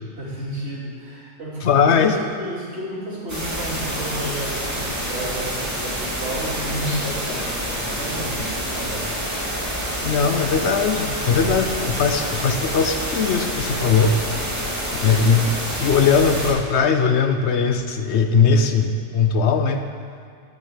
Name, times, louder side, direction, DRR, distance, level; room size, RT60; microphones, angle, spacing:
voice 1, 0.2-9.1, right 1 dB, 55° right, -7 dB, 3.1 m, -32 dB
voice 2, 1.6-2.2 10.0-14.2 15.0-15.5 15.8-19.8, left 5 dB, 65° left, 7 dB, 0.9 m, -19 dB
sound 1, 3.3-16.5, equal, 10° right, 2.1 m, -27 dB
10.5 x 6.4 x 8.1 m, 2.2 s
omnidirectional pair, 1.4 m